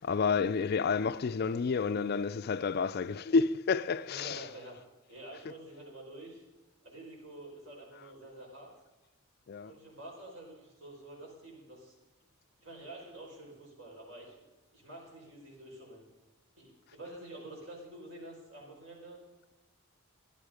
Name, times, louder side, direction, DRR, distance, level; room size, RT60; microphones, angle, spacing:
voice 1, 0.0-4.4 9.5-9.7, left 5 dB, 45° left, 0.4 m, -30 dB
voice 2, 3.9-4.7 5.1-6.4 6.8-8.7 9.6-11.9 12.6-14.4 14.7-16.0 16.6-19.3, right 1 dB, 65° right, 4.9 m, -48 dB
15.0 x 11.5 x 5.1 m
head